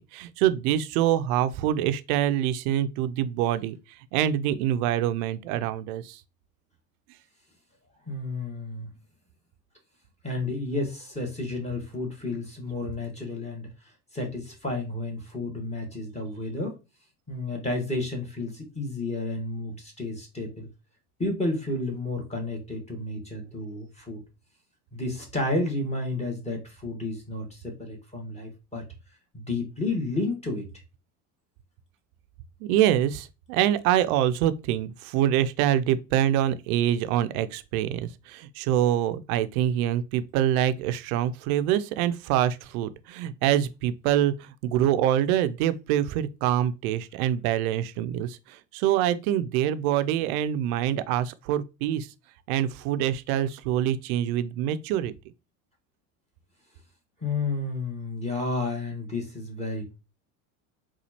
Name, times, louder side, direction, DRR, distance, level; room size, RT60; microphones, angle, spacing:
voice 1, 0.0-3.7 4.1-6.2 32.6-52.1 52.5-55.1, right 11 dB, 70° right, 0.5 m, -25 dB
voice 2, 8.1-8.9 10.2-13.7 14.1-16.8 17.3-20.7 21.2-24.2 24.9-28.8 29.3-30.7 57.2-60.0, left 2 dB, 15° left, 1.3 m, -31 dB
4.2 x 2.4 x 2.8 m
hypercardioid pair, 90°, 46 cm